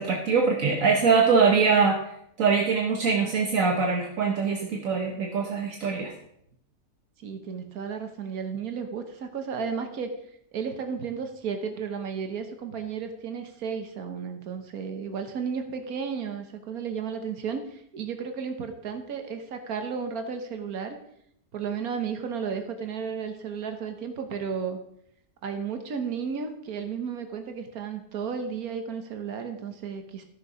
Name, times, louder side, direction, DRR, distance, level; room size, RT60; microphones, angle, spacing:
voice 1, 0.0-2.0 2.4-6.1, right 5 dB, 70° right, 1 dB, 1.6 m, -23 dB
voice 2, 7.2-10.1 10.5-21.0 21.5-24.8 25.4-30.2, right 6 dB, 90° right, 6 dB, 1.6 m, -33 dB
13.5 x 6.9 x 5.0 m, 0.72 s
omnidirectional pair, 1.5 m